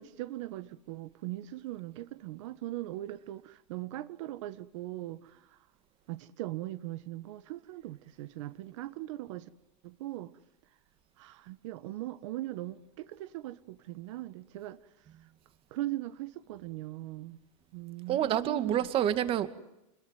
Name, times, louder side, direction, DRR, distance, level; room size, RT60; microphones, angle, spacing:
voice 1, 0.0-5.4 6.1-9.5 9.8-10.3 11.2-14.8 15.7-17.4 17.7-18.9, right 16 dB, 65° right, 12 dB, 1.5 m, -40 dB
voice 2, 18.1-19.5, right 10 dB, 35° right, 11 dB, 2.3 m, -28 dB
29.0 x 21.5 x 9.3 m, 0.87 s
supercardioid pair, 145°, 17 cm